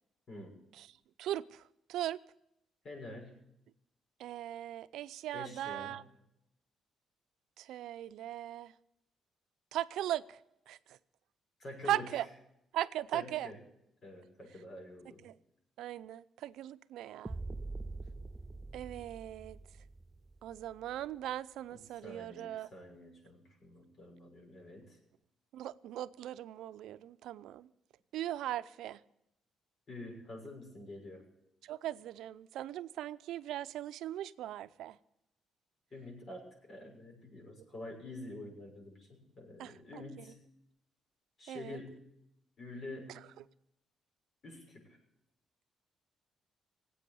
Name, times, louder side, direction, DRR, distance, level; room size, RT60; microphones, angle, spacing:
voice 1, 0.3-0.6 2.8-3.4 5.3-6.0 11.6-12.1 13.1-13.6 14.0-15.2 21.7-25.0 29.9-31.2 35.9-40.4 41.4-42.1 42.6-43.3 44.4-45.0, left 2 dB, 50° left, 1 dB, 6.6 m, -47 dB
voice 2, 1.2-1.6 1.9-2.2 4.2-6.0 7.6-8.7 9.7-10.4 10.7-11.0 11.9-12.3 12.7-13.5 15.2-15.4 15.8-17.4 18.7-19.6 20.4-22.7 25.5-27.7 28.1-29.0 31.6-35.0 39.6-40.0 41.5-41.8, right 13 dB, 85° right, 14 dB, 0.5 m, -39 dB
sound 1, 17.3-21.3, right 3 dB, 20° right, 0.5 m, -45 dB
18.5 x 8.5 x 8.4 m, 0.84 s
cardioid pair, 90°, 0 cm